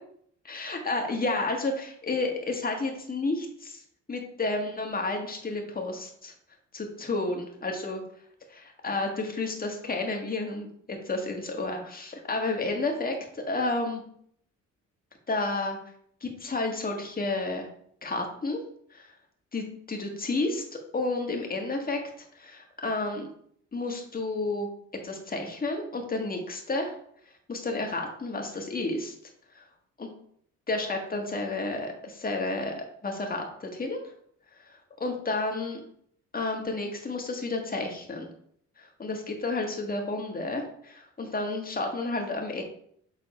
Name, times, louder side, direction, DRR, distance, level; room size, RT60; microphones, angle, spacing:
voice 1, 0.4-3.8 4.1-6.3 6.7-8.0 8.5-14.0 15.3-15.8 16.2-17.7 18.0-18.6 18.9-19.1 19.5-20.6 20.9-22.0 22.3-23.3 23.7-24.7 25.0-26.9 27.5-29.1 29.5-29.6 30.0-30.1 30.7-34.0 35.0-35.8 36.3-38.3 38.8-42.6, left 2 dB, 30° left, 2 dB, 1.7 m, -31 dB
7.0 x 4.1 x 4.3 m, 0.65 s
cardioid pair, 90°, 30 cm